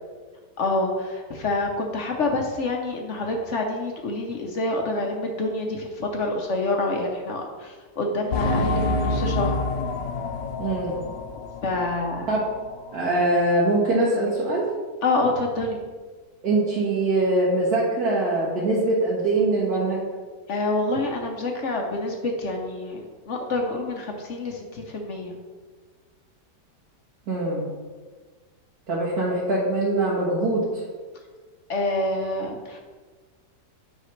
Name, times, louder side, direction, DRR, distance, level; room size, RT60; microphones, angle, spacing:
voice 1, 0.6-9.6 11.6-12.3 15.0-15.8 20.5-25.4 31.7-32.8, left 2 dB, 55° left, 2 dB, 0.9 m, -27 dB
sound 1, 8.3-12.6 12.9-13.0 13.6-13.7, left 2 dB, 90° left, 1.3 m, -27 dB
voice 2, 10.6-11.0 12.3-12.4 12.9-14.7 16.4-20.1 27.3-27.7 28.9-30.8, right 2 dB, 60° right, -7 dB, 1.7 m, -23 dB
8.1 x 5.7 x 3.2 m, 1.4 s
omnidirectional pair, 1.8 m